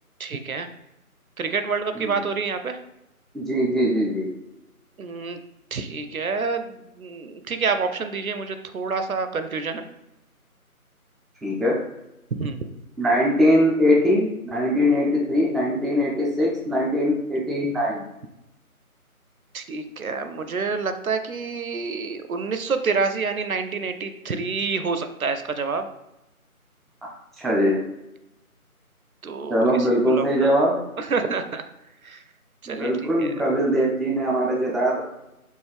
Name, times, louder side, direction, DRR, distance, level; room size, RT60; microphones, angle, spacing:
voice 1, 0.2-0.7 1.4-2.8 5.0-5.4 5.7-9.9 12.4-12.6 19.5-25.9 29.2-30.3 31.0-31.6 32.0-32.2 32.6-33.3, right 4 dB, 70° right, 9 dB, 0.5 m, -28 dB
voice 2, 3.3-4.3 11.4-11.8 13.0-18.0 27.4-27.8 29.5-30.8 32.7-35.0, equal, ahead, -3 dB, 0.4 m, -21 dB
4.5 x 2.5 x 3.3 m, 0.92 s
figure-of-eight pair, 165°, 44 cm